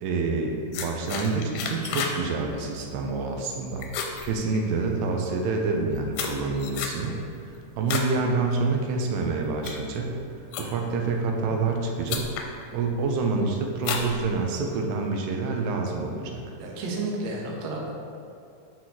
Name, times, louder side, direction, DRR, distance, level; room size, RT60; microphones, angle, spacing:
voice 1, 0.0-3.9 4.2-7.2 7.4-10.2 10.6-12.3 12.7-16.5, right 3 dB, 90° right, 1 dB, 2.8 m, -27 dB
sound 1, 0.7-2.2 2.5-2.9 3.2-3.6 3.8-5.0 5.6-8.2 8.5-8.9 9.4-11.0 11.7-11.8 12.1-12.5 13.0-13.4 13.8-14.8, left 6 dB, 85° left, 2.8 m, -32 dB
voice 2, 16.6-17.9, right 2 dB, 75° right, -3 dB, 1.6 m, -31 dB
10.0 x 5.8 x 3.0 m, 2.5 s
omnidirectional pair, 4.8 m